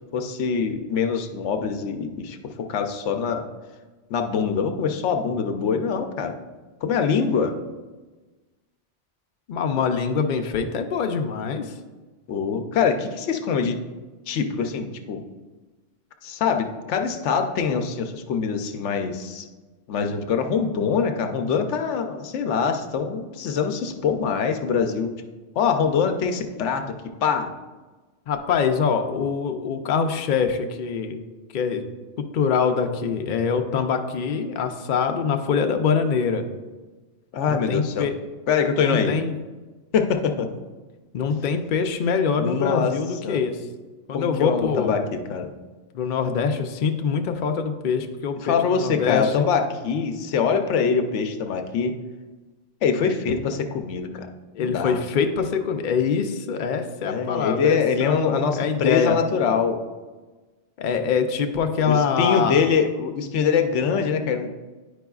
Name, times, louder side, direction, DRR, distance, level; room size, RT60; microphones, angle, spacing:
voice 1, 0.1-2.4 2.7-3.5 4.1-6.3 6.8-7.5 12.3-13.8 14.3-15.2 16.2-19.5 19.9-25.1 25.6-26.9 27.2-27.5 37.3-38.1 38.5-39.1 39.9-40.5 42.4-43.0 43.2-43.5 44.1-45.5 48.4-52.0 52.8-54.3 54.6-55.0 57.0-59.8 61.8-64.5, left 6 dB, 75° left, 6 dB, 0.9 m, -24 dB
voice 2, 9.5-11.7 28.3-31.2 31.5-31.8 32.2-36.4 37.5-38.1 38.8-39.3 41.1-43.6 44.1-45.0 45.9-49.5 54.5-59.2 60.8-62.6, left 6 dB, 55° left, 5 dB, 0.6 m, -24 dB
10.0 x 4.8 x 2.3 m, 1.2 s
omnidirectional pair, 1.2 m